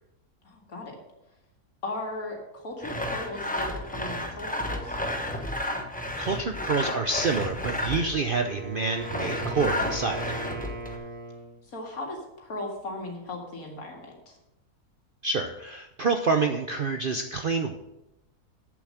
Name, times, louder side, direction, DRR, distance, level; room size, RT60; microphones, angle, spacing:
voice 1, 0.4-1.0 1.8-5.0 11.7-14.4, left 2 dB, 65° left, 1 dB, 2.5 m, -37 dB
Sawing, 2.8-8.2 9.0-11.0, left 1 dB, 5° left, 0.8 m, -32 dB
voice 2, 6.2-10.4 15.2-17.8, right 4 dB, 55° right, 5 dB, 0.6 m, -27 dB
Wind instrument woodwind instrument, 7.7-11.6, right 2 dB, 75° right, 2.2 m, -38 dB
8.3 x 7.0 x 6.5 m, 0.91 s
omnidirectional pair, 1.6 m